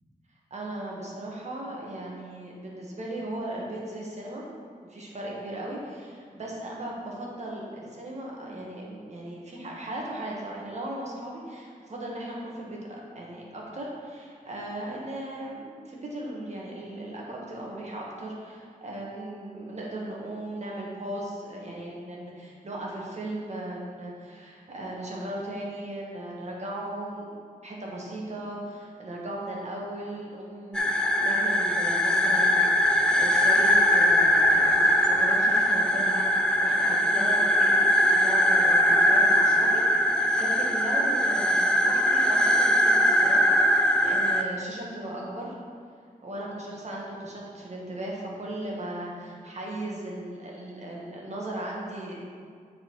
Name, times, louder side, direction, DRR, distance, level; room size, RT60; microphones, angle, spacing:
voice 1, 0.5-4.4 4.8-37.8 38.1-45.5 46.2-52.2, right 1 dB, 50° right, -3 dB, 1.5 m, -37 dB
sound 1, 30.7-44.4, equal, 5° left, 0.4 m, -21 dB
9.7 x 4.2 x 4.7 m, 2.1 s
wide cardioid pair, 150°, 15 cm